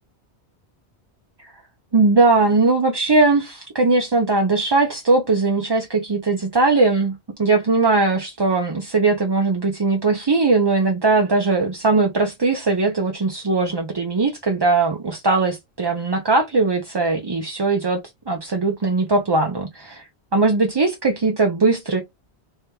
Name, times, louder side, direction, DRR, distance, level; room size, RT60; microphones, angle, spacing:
voice 1, 1.9-20.0 20.3-22.0, right 3 dB, 30° right, 0.5 m, -19 dB
3.4 x 3.3 x 2.9 m
omnidirectional pair, 1.1 m